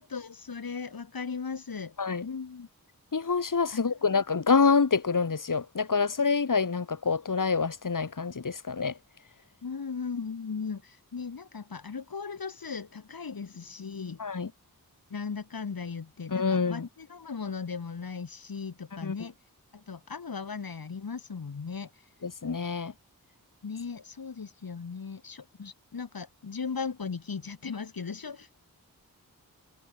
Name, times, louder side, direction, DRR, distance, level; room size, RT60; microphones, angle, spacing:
voice 1, 0.0-2.0 2.2-2.7 3.7-3.8 9.6-14.2 15.1-19.4 19.7-22.1 23.6-28.5, left 5 dB, 75° left, 2.5 m, -37 dB
voice 2, 3.1-9.0 14.2-14.5 16.3-16.9 19.0-19.2 22.2-22.9 25.6-25.7, left 5 dB, 60° left, 2.3 m, -26 dB
wide cardioid pair, 70°, 36 cm